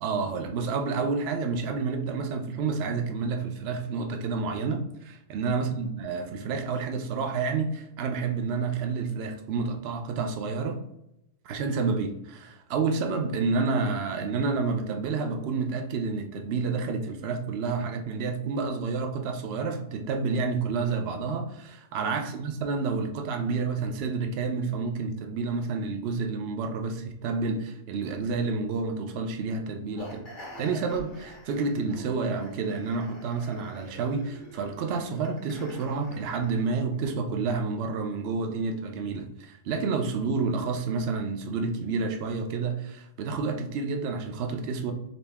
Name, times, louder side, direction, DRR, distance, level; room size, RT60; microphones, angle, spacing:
voice 1, 0.0-10.8 11.4-30.3 30.6-44.9, right 4 dB, 65° right, 6 dB, 0.7 m, -29 dB
sound 1, 30.0-36.7, equal, 40° left, 1.2 m, -47 dB
4.0 x 2.5 x 3.4 m, 0.82 s
omnidirectional pair, 1.3 m